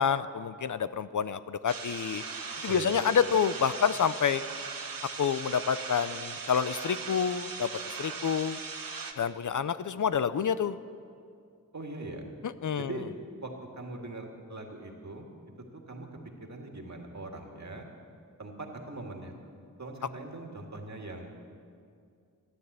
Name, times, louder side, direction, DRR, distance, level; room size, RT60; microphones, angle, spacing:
voice 1, 0.0-2.2 2.6-4.4 5.2-7.7 8.0-8.6 9.2-10.8 12.6-12.9, left 7 dB, 60° left, 14 dB, 0.5 m, -28 dB
sound 1, 1.7-9.1, right 5 dB, 75° right, 1.1 m, -39 dB
voice 2, 2.7-3.0 11.7-12.3 12.8-13.0 13.4-15.3 15.9-16.1 16.5-17.9 18.4-19.3 19.8-21.3, right 2 dB, 50° right, 2 dB, 2.0 m, -41 dB
14.0 x 11.0 x 8.1 m, 2.3 s
wide cardioid pair, 90°, 35 cm